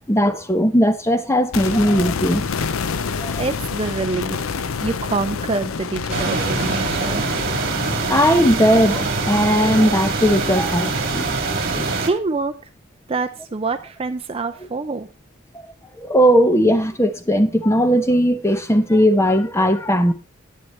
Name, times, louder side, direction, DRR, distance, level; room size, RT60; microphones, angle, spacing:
voice 1, 0.1-2.5 3.2-3.4 8.1-11.4 11.7-11.9 16.0-20.1, equal, 15° left, 0.8 m, -18 dB
sound 1, 1.5-11.5 11.8-11.9, left 5 dB, 75° left, 0.6 m, -29 dB
voice 2, 3.4-4.4 4.8-7.2 12.0-12.5 13.1-15.1, right 3 dB, 25° right, 0.5 m, -25 dB
sound 2, 6.1-12.1, right 3 dB, 50° right, 1.7 m, -24 dB
9.9 x 9.3 x 3.2 m
head